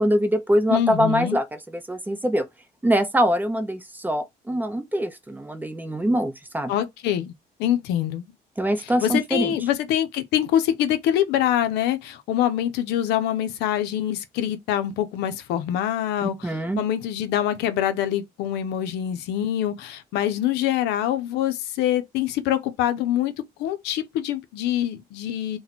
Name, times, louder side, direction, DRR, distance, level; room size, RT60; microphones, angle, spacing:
voice 1, 0.0-2.4 2.8-6.7 8.6-9.6 16.4-16.8, equal, 10° right, 0.5 m, -23 dB
voice 2, 0.7-1.4 6.7-7.3 7.6-8.3 9.0-16.5 16.8-23.3 23.6-25.6, left 11 dB, 85° left, 0.5 m, -24 dB
2.9 x 2.1 x 4.0 m
cardioid pair, 110°, 17 cm